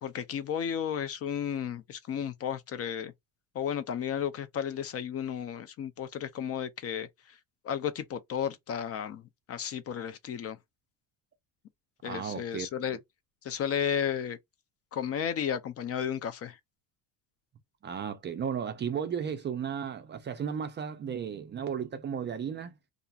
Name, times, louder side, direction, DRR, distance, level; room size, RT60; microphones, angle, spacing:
voice 1, 0.0-3.1 3.5-7.4 7.6-10.6 12.0-13.0 13.4-14.4 14.9-16.6, left 8 dB, 35° left, 0.4 m, -33 dB
voice 2, 12.0-12.7 17.8-22.7, right 7 dB, 30° right, 0.4 m, -34 dB
2.7 x 2.4 x 2.3 m
cardioid pair, 115°, 41 cm